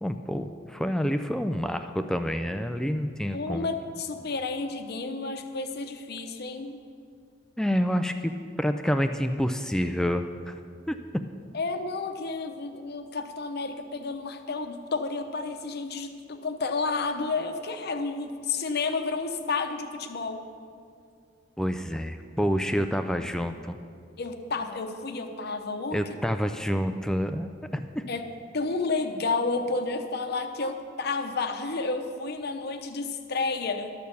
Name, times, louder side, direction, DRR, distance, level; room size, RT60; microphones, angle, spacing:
voice 1, 0.0-3.7 7.6-8.3 8.6-10.5 10.9-11.0 21.6-23.8 25.9-28.0, equal, 5° left, 8 dB, 0.3 m, -28 dB
voice 2, 3.3-6.8 11.5-20.4 23.2-23.3 24.2-26.0 28.1-28.2 28.5-33.9, left 3 dB, 55° left, 6 dB, 0.8 m, -31 dB
12.0 x 6.6 x 6.9 m, 2.3 s
head